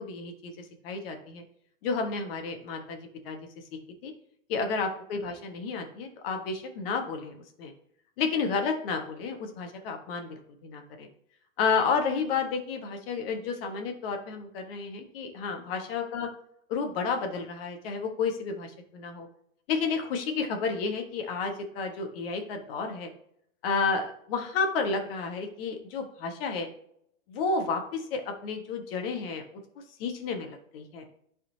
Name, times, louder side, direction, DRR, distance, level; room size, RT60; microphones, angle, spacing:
voice 1, 0.0-1.4 1.8-3.4 4.0-4.1 4.5-7.7 8.2-11.1 11.6-16.3 16.7-19.3 19.7-23.1 23.6-26.7 27.3-29.6 30.0-31.0, left 5 dB, 45° left, 5 dB, 1.5 m, -31 dB
11.0 x 4.3 x 2.8 m, 0.70 s
hypercardioid pair, 130°, 41 cm